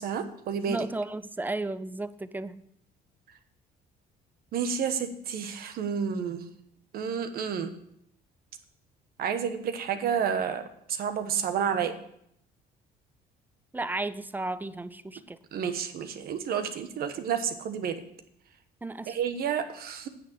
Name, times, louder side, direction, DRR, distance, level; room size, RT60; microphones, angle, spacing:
voice 1, 0.0-0.9 4.5-6.4 6.9-7.7 9.2-10.6 10.9-11.9 15.5-18.0 19.1-20.1, right 7 dB, 65° right, 9 dB, 1.2 m, -30 dB
voice 2, 0.7-2.6 13.7-15.4 18.8-19.1, right 2 dB, 10° right, 14 dB, 0.5 m, -34 dB
9.5 x 6.3 x 7.4 m, 0.73 s
cardioid pair, 110°, 17 cm